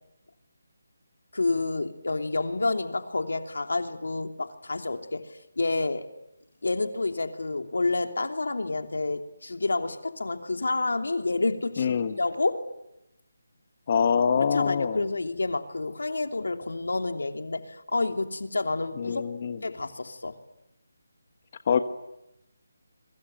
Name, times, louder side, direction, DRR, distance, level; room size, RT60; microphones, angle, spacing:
voice 1, 1.3-6.1 6.6-12.7 14.4-19.2 19.6-20.4, left 3 dB, 85° left, 5 dB, 3.0 m, -29 dB
voice 2, 11.8-12.1 13.9-15.0 19.0-19.6 21.7-21.8, left 6 dB, 35° left, 8 dB, 1.3 m, -24 dB
27.5 x 23.0 x 9.1 m, 0.90 s
figure-of-eight pair, 170°, 0 cm